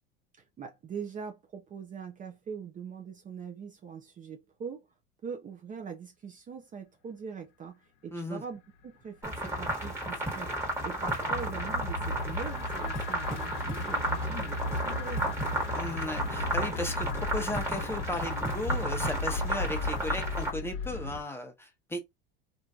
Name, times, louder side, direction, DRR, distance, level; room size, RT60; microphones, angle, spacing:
voice 1, 0.6-4.9 5.2-10.5 10.8-15.3, right 6 dB, 25° right, 0.6 m, -42 dB
voice 2, 8.1-8.4 15.7-22.0, left 1 dB, 10° left, 0.8 m, -36 dB
sound 1, 9.2-20.5, right 1 dB, 10° right, 1.4 m, -33 dB
sound 2, 9.5-21.2, left 2 dB, 45° left, 0.9 m, -36 dB
3.0 x 2.6 x 2.3 m
supercardioid pair, 110°, 30 cm